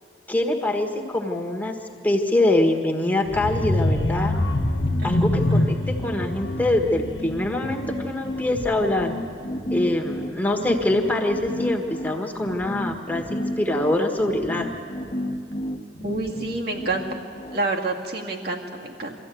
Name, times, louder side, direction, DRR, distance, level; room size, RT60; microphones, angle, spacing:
voice 1, 0.3-1.7 2.0-4.3 5.0-9.2 9.7-14.7, left 1 dB, 10° left, 1 dB, 1.5 m, -24 dB
sound 1, 3.3-9.0 9.4-9.7 10.0-10.1, left 1 dB, 80° left, 1.2 m, -25 dB
sound 2, 5.1-17.6, equal, 30° left, 1.2 m, -33 dB
voice 2, 16.0-17.2 17.5-19.2, right 2 dB, 60° right, 1 dB, 2.2 m, -28 dB
23.0 x 14.5 x 9.3 m, 2.4 s
head